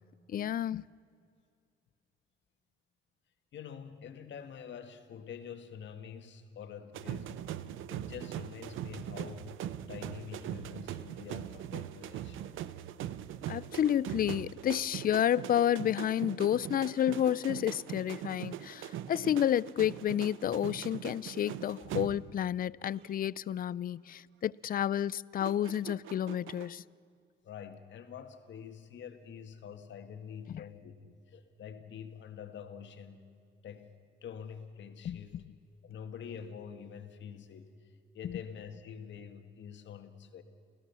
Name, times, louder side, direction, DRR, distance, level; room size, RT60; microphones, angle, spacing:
voice 1, 0.3-0.8 13.5-26.8 30.5-30.6 35.0-35.2 38.2-38.4, left 10 dB, 45° left, 0.4 m, -30 dB
voice 2, 3.5-7.4 7.9-9.6 9.9-12.5 27.4-33.2 33.6-33.9 34.2-35.4 35.8-37.7 38.1-40.4, left 7 dB, 65° left, 1.8 m, -46 dB
sound 1, 6.9-22.5 22.8-23.2 25.4-26.7, right 11 dB, 85° right, 0.7 m, -41 dB
28.0 x 16.0 x 7.0 m
cardioid pair, 90°, 20 cm